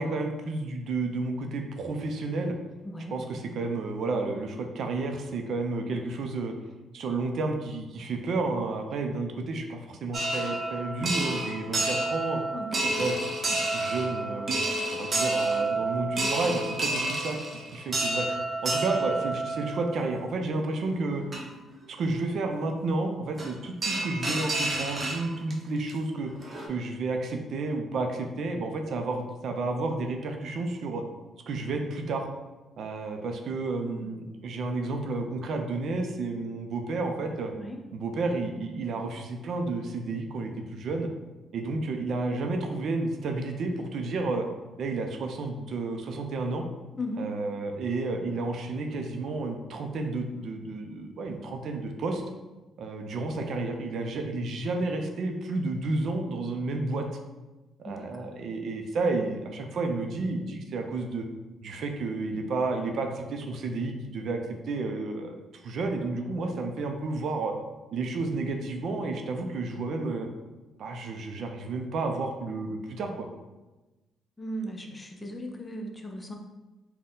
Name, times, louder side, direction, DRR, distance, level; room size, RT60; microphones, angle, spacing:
voice 1, 0.0-2.6 3.1-6.5 6.9-12.4 12.8-14.5 14.9-18.3 18.6-21.2 21.9-26.3 26.7-31.0 31.5-32.3 32.8-37.5 37.9-41.1 41.5-44.5 44.8-46.6 47.2-52.2 52.8-57.1 57.8-61.3 61.6-67.5 67.9-70.3 70.8-73.3, right 3 dB, 65° right, 4 dB, 0.4 m, -31 dB
voice 2, 2.8-3.2 12.5-12.9 33.8-34.2 37.5-37.8 47.0-47.3 57.8-58.1 74.4-76.4, equal, 20° left, 3 dB, 0.5 m, -37 dB
sound 1, 10.1-20.2 20.9-21.0 21.3-21.4 23.4-23.5 23.8-25.5 25.9-26.0 26.3-26.7, right 2 dB, 35° right, 0.8 m, -29 dB
4.1 x 2.2 x 3.7 m, 1.1 s
cardioid pair, 90°, 0 cm